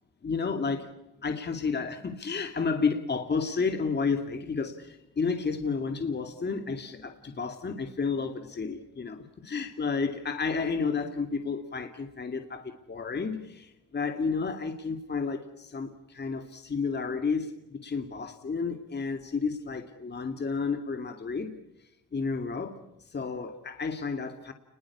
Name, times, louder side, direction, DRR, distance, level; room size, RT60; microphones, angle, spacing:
voice 1, 0.2-0.9 1.2-21.6 22.1-22.8 23.1-24.5, left 5 dB, 35° left, 6 dB, 2.3 m, -31 dB
29.5 x 21.0 x 8.5 m, 0.91 s
cardioid pair, 90°, 30 cm